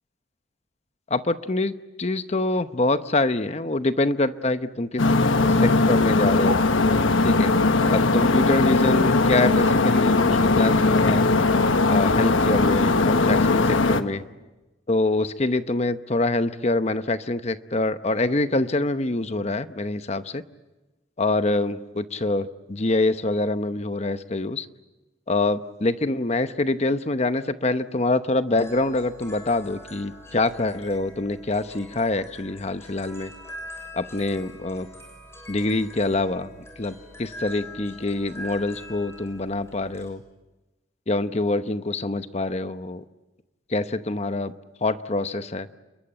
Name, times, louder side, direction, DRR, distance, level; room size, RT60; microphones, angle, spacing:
voice 1, 1.1-5.0 5.6-6.6 7.2-7.5 7.9-11.2 11.9-14.2 14.9-20.4 21.2-24.7 25.3-33.3 33.9-34.9 35.5-36.5 36.8-40.2 41.1-43.0 43.7-44.5 44.8-45.7, left 2 dB, 35° left, 11 dB, 0.9 m, -25 dB
sound 1, 5.0-14.0, left 3 dB, 80° left, 1.2 m, -19 dB
sound 2, 28.5-40.1, left 1 dB, 15° left, 6.6 m, -43 dB
28.5 x 22.0 x 9.0 m, 1.1 s
head